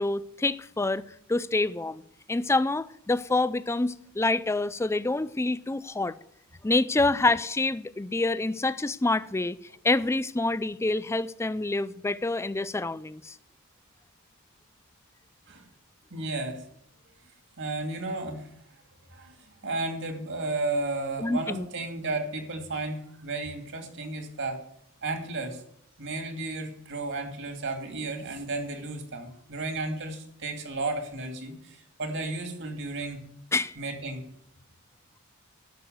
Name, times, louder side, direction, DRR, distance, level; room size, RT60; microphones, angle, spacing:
voice 1, 0.0-2.0 2.3-6.2 6.6-9.6 9.8-13.4 21.2-21.7 33.5-33.8, left 2 dB, 10° left, 0.4 m, -27 dB
voice 2, 16.1-16.6 17.6-18.5 19.1-24.6 25.0-25.6 26.0-33.2 33.8-34.2, right 2 dB, 55° right, 2.7 m, -33 dB
12.5 x 6.4 x 9.4 m
head